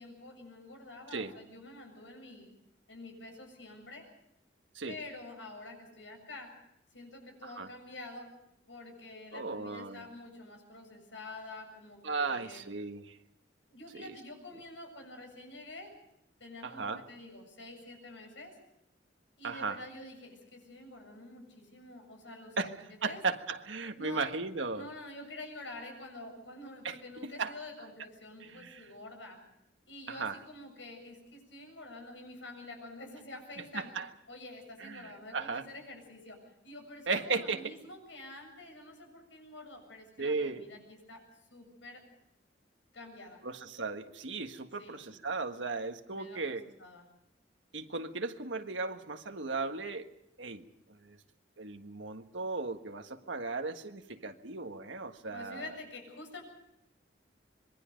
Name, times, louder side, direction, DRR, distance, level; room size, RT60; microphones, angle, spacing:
voice 1, 0.0-2.5 2.9-4.1 4.9-6.5 6.9-8.3 8.7-12.6 13.7-15.9 16.4-18.5 19.4-22.7 23.1-23.2 24.0-24.2 24.7-29.4 29.9-33.9 34.3-36.4 36.6-41.2 41.5-42.0 42.9-43.4 44.8-45.0 46.1-47.1 47.8-48.0 55.3-56.4, left 2 dB, 80° left, 4 dB, 7.6 m, -48 dB
voice 2, 9.3-10.0 12.0-13.1 13.9-14.1 16.6-17.0 19.4-19.8 22.6-22.7 23.0-24.9 26.8-27.0 27.2-27.5 28.4-28.9 30.1-30.4 33.7-34.1 34.8-35.6 37.1-37.7 40.2-40.6 43.4-46.6 47.7-50.0 50.4-50.6 51.0-51.2 51.6-55.6, right 4 dB, 85° right, 6 dB, 1.6 m, -36 dB
26.5 x 22.0 x 5.2 m, 0.82 s
head